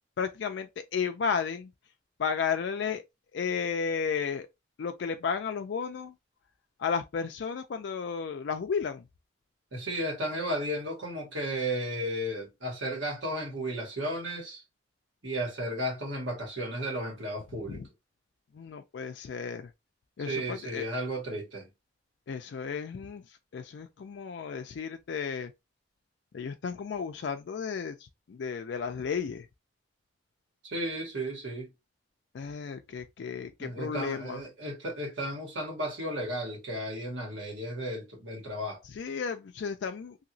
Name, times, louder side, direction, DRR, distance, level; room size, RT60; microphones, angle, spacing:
voice 1, 0.2-1.7 2.2-3.0 3.3-4.5 4.8-6.1 6.8-9.0 17.7-17.9 18.5-19.7 20.2-20.9 22.3-25.5 26.3-29.5 32.3-34.4 38.8-40.2, left 6 dB, 70° left, 0.3 m, -33 dB
voice 2, 9.7-14.6 15.2-17.9 20.3-21.7 30.6-31.7 33.6-38.8, right 1 dB, 85° right, 1.5 m, -34 dB
2.9 x 2.7 x 2.6 m
head